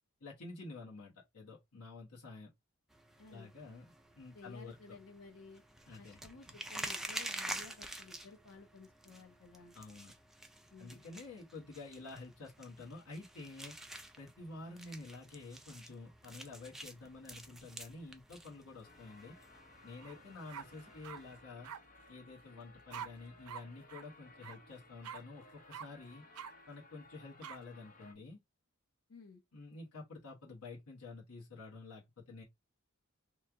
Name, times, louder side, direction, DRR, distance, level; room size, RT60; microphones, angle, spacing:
voice 1, 0.2-2.5 3.3-4.8 5.9-6.2 9.7-10.1 10.8-13.7 14.2-19.3 19.8-21.7 22.1-26.2 26.7-28.4 29.5-32.4, left 3 dB, 90° left, 1.2 m, -50 dB
sound 1, 2.9-21.4, right 1 dB, ahead, 0.3 m, -49 dB
voice 2, 3.2-3.5 4.3-5.6 6.0-9.8 10.7-11.0 29.1-29.4, left 3 dB, 70° left, 1.0 m, -55 dB
sound 2, 18.8-28.1, left 2 dB, 35° left, 0.6 m, -60 dB
sound 3, 20.0-20.2 20.5-21.2 21.6-21.8 22.9-23.1 23.5-23.6 23.9-24.0 24.4-24.6 25.0-25.2 25.7-25.9 26.3-26.5 27.4-27.6, right 8 dB, 85° right, 0.5 m, -45 dB
3.1 x 2.4 x 3.5 m
head